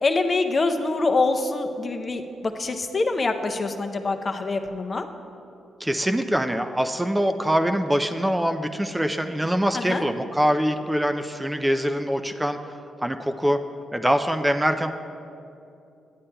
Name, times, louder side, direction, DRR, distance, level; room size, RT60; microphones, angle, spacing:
voice 1, 0.0-5.0 9.7-10.0, left 3 dB, 40° left, 6 dB, 0.5 m, -25 dB
voice 2, 5.8-12.6 13.0-13.6 13.9-14.9, equal, 10° right, 7 dB, 0.4 m, -23 dB
10.0 x 8.3 x 2.2 m, 2.7 s
supercardioid pair, 60°, 0 cm